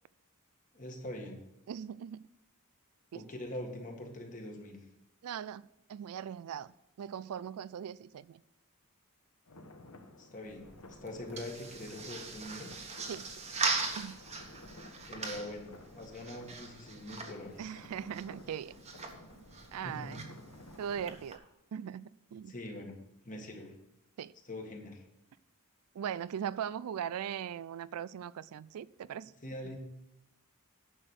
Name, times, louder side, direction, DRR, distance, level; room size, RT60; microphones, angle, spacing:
voice 1, 0.7-1.4 3.1-4.8 10.2-10.7 11.0-12.7 15.1-17.8 19.8-20.2 22.5-22.9 23.2-23.7 24.5-25.0 29.4-29.8, left 1 dB, 35° left, 2 dB, 1.8 m, -43 dB
voice 2, 1.7-2.2 3.1-3.2 5.2-5.6 5.9-8.4 13.1-13.3 14.0-14.2 17.6-18.7 19.3-19.4 19.7-20.3 20.8-21.4 21.7-22.5 24.2-24.3 25.9-29.3, right 8 dB, 75° right, 19 dB, 0.3 m, -40 dB
sound 1, 9.5-21.2, left 2 dB, 75° left, 1.1 m, -54 dB
sound 2, 10.4-21.4, right 4 dB, 30° right, 1.3 m, -41 dB
10.0 x 6.1 x 6.5 m, 0.85 s
head